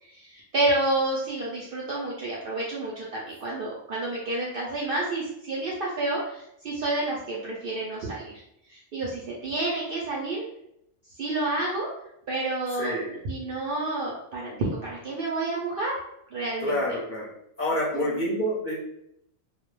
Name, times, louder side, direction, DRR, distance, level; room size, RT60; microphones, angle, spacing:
voice 1, 0.0-8.4 8.7-10.4 11.2-11.9 12.3-13.0 13.2-16.0 16.3-16.8 17.9-18.3, right 2 dB, 65° right, -4 dB, 0.6 m, -29 dB
voice 2, 12.8-13.2 16.6-17.3 17.6-18.7, equal, 45° left, -6 dB, 0.7 m, -27 dB
2.3 x 2.0 x 3.0 m, 0.77 s
omnidirectional pair, 1.4 m